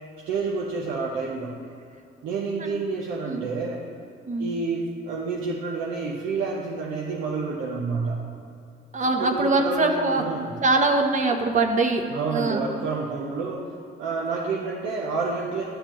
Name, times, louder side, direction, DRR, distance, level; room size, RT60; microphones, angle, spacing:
voice 1, 0.3-1.5 2.2-3.8 4.4-8.2 9.2-10.5 12.1-13.7 14.0-15.6, right 4 dB, 85° right, -3 dB, 0.9 m, -29 dB
voice 2, 8.9-10.2 10.6-12.0 12.3-12.6, right 3 dB, 40° right, 3 dB, 0.9 m, -23 dB
11.5 x 6.6 x 3.0 m, 2.5 s
cardioid pair, 90°, 20 cm